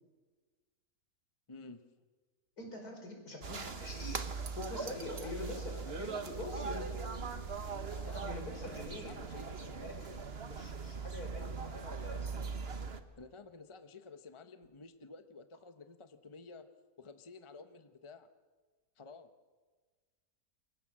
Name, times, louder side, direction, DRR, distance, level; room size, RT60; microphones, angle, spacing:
voice 1, 1.5-1.8 4.7-7.0 7.9-8.8 9.0-9.8 13.2-16.7 17.0-18.3 19.0-19.3, left 4 dB, 20° left, 10 dB, 1.0 m, -52 dB
voice 2, 2.6-4.3 4.6-6.9 8.0-10.2 10.4-12.5, left 2 dB, 80° left, 3 dB, 5.5 m, -45 dB
sound 1, 3.4-13.0, right 5 dB, 45° right, 1.5 m, -40 dB
Engine, 3.9-11.5, left 1 dB, 65° left, 5.6 m, -62 dB
28.0 x 23.5 x 7.5 m, 1.4 s
omnidirectional pair, 1.6 m